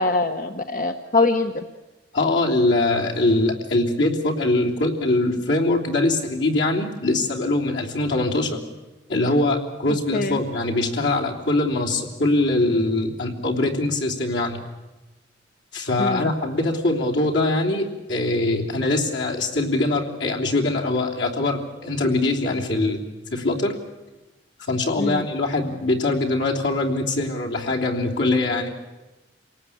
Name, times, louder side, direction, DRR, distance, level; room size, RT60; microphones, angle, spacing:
voice 1, 0.0-1.6 10.1-10.4 16.0-16.3 25.0-25.3, left 3 dB, 50° left, 7 dB, 0.9 m, -23 dB
voice 2, 2.1-8.6 9.1-14.6 15.7-23.0 23.3-23.7 24.7-28.7, left 2 dB, 80° left, -1 dB, 3.4 m, -22 dB
27.5 x 18.5 x 8.7 m, 1.1 s
head